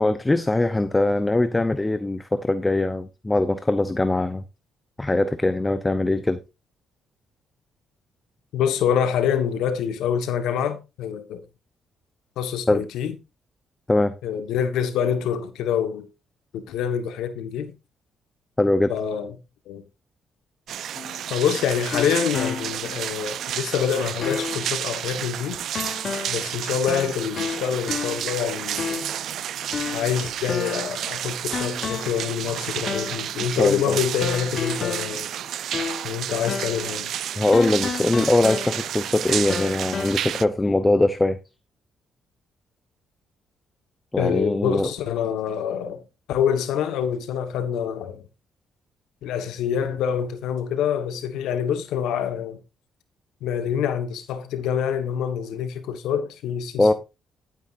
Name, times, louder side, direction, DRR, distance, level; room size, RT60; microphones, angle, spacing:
voice 1, 0.0-4.4 5.0-6.4 12.7-12.8 13.9-14.1 18.6-18.9 33.6-34.0 37.3-41.4 44.1-44.9 56.8-56.9, left 2 dB, 15° left, 0.8 m, -21 dB
voice 2, 8.5-11.4 12.4-13.2 14.2-16.1 16.5-17.7 18.9-19.3 19.7-19.8 21.3-25.6 26.3-29.0 29.9-35.3 36.0-37.1 44.2-46.0 46.3-48.2 49.2-52.6 53.4-56.9, left 8 dB, 85° left, 1.4 m, -26 dB
sound 1, 20.7-40.5, right 10 dB, 70° right, 0.5 m, -31 dB
sound 2, 20.9-23.0 23.4-23.5 24.2-24.7 25.7-26.5 26.9-28.4 28.8-29.2 29.7-31.0 31.5-32.3 32.9-33.3 34.2-36.2 36.5-36.9 37.5-39.0 39.5-40.1, left 6 dB, 50° left, 1.0 m, -32 dB
11.5 x 9.2 x 2.6 m
cardioid pair, 90°, 0 cm